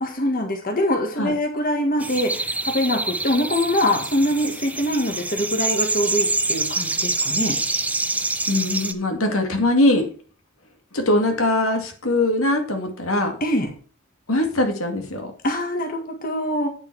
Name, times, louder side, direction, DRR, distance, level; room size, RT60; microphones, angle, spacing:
voice 1, 0.0-7.6 13.4-13.7 15.4-16.7, left 1 dB, 45° left, 3 dB, 1.7 m, -23 dB
sound 1, 2.0-8.9, right 3 dB, 5° right, 0.5 m, -26 dB
voice 2, 8.5-10.1 10.9-13.4 14.3-15.3, left 1 dB, 85° left, 3 dB, 2.2 m, -21 dB
9.1 x 7.1 x 4.7 m, 0.41 s
head